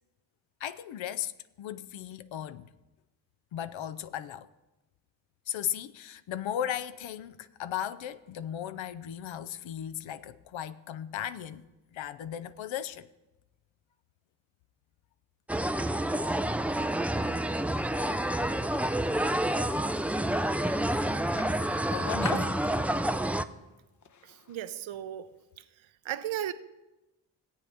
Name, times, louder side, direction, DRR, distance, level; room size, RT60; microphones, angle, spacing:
voice 1, 0.6-1.3 1.6-2.7 3.5-4.5 5.5-11.6 11.9-13.1 21.9-22.8, left 10 dB, 65° left, 0.7 m, -36 dB
sound 1, 15.5-23.4, right 1 dB, 5° right, 0.3 m, -28 dB
sound 2, 20.4-20.7 21.4-24.6 25.4-25.5, left 5 dB, 35° left, 0.8 m, -41 dB
voice 2, 24.5-25.3 26.0-26.5, right 11 dB, 70° right, 0.7 m, -34 dB
16.5 x 8.6 x 3.5 m
supercardioid pair, 40°, 49 cm